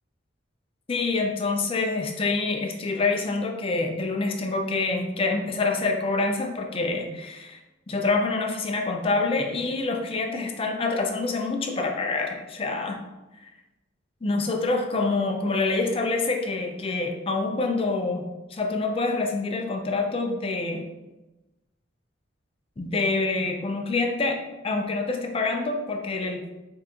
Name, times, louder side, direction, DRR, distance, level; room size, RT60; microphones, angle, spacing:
voice 1, 0.9-7.6 7.9-13.0 14.2-20.9 22.8-26.4, left 3 dB, 30° left, 3 dB, 0.4 m, -26 dB
3.8 x 3.5 x 2.8 m, 1.0 s
head